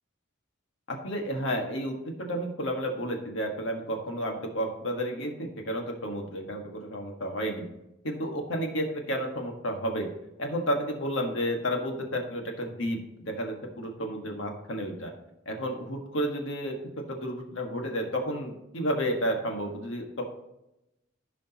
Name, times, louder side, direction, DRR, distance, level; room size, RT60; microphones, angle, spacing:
voice 1, 0.9-7.6 8.0-10.1 10.4-15.1 15.4-16.8 17.1-20.2, equal, 75° left, 2 dB, 1.6 m, -31 dB
15.0 x 5.1 x 2.9 m, 0.90 s
head